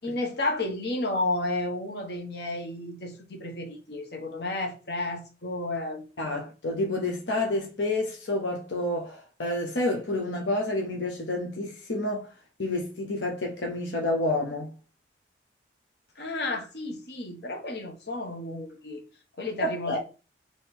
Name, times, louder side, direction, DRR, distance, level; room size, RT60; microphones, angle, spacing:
voice 1, 0.0-6.0 16.2-19.0 19.4-20.0, left 2 dB, 65° left, 1.1 m, -32 dB
voice 2, 6.2-12.3 12.6-14.7 19.6-20.0, left 2 dB, 85° left, 0.9 m, -29 dB
3.6 x 3.1 x 4.3 m
head